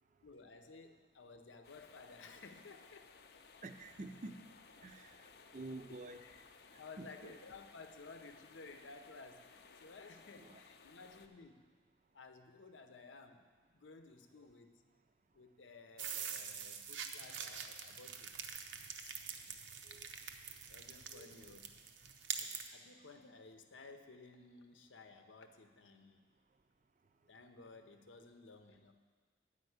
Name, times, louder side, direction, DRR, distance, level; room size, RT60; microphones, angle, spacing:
voice 1, 0.2-3.1 6.2-6.5 6.8-11.7 12.1-13.4 13.7-14.8 15.3-18.3 18.7-19.1 19.5-19.6 20.7-21.6 22.3-26.2 27.3-28.9, left 3 dB, 90° left, 7 dB, 0.8 m, -56 dB
sound 1, 1.6-11.3, left 5 dB, 55° left, 0.5 m, -60 dB
voice 2, 3.6-4.4 4.8-5.1 5.5-6.2 7.0-7.3 10.4-10.6 14.4-14.5 19.9-20.1 21.1-21.6, right 2 dB, 40° right, 8 dB, 0.5 m, -49 dB
sound 2, 16.0-22.7, right 7 dB, 80° right, 0.7 m, -45 dB
9.7 x 5.3 x 8.0 m, 1.5 s
head